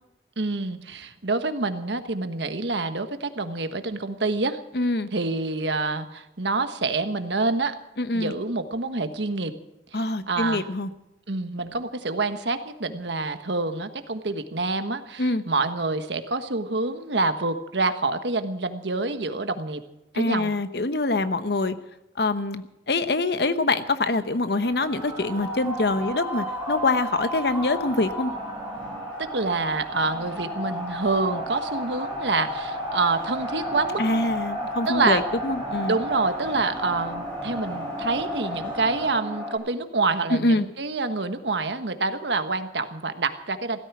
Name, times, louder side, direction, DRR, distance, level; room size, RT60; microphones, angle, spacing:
voice 1, 0.4-4.6 5.1-7.7 8.1-9.5 9.9-10.0 10.3-10.6 11.3-19.8 20.1-20.5 29.2-34.0 34.9-35.2 35.9-43.8, right 3 dB, 85° right, 9 dB, 1.3 m, -27 dB
voice 2, 4.7-5.1 8.0-8.3 9.9-10.9 15.2-15.4 20.1-21.8 22.2-28.3 34.0-36.0 40.3-40.7, left 2 dB, 70° left, 11 dB, 1.0 m, -25 dB
sound 1, 24.6-39.6, equal, 5° left, 6.8 m, -33 dB
sound 2, 24.8-30.2, right 1 dB, 10° right, 2.5 m, -38 dB
16.0 x 13.5 x 6.2 m, 0.92 s
head